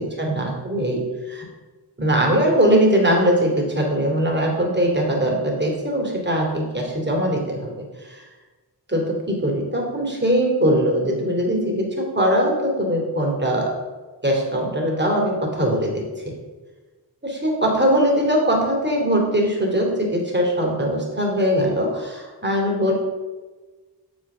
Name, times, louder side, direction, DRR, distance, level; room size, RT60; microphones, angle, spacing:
voice 1, 0.0-1.4 2.0-7.7 8.0-8.3 8.9-13.7 14.2-16.3 17.2-22.9, equal, 25° right, -1 dB, 2.6 m, -21 dB
7.2 x 6.2 x 6.0 m, 1.3 s
wide cardioid pair, 65°, 41 cm